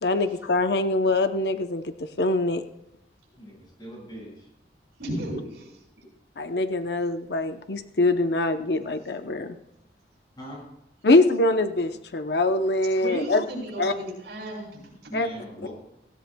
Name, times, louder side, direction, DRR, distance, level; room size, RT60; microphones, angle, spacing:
voice 1, 0.0-1.9 2.2-2.6 6.4-9.6 11.0-13.4 13.8-13.9 15.1-15.3 15.6-15.7, left 2 dB, 70° left, 8 dB, 0.7 m, -23 dB
voice 2, 3.4-4.5 10.4-10.6 15.1-15.7, right 1 dB, 25° left, -4 dB, 6.0 m, -40 dB
voice 3, 5.0-5.8 13.0-15.1, right 1 dB, 75° right, -2 dB, 5.6 m, -34 dB
18.0 x 16.5 x 2.3 m, 0.83 s
head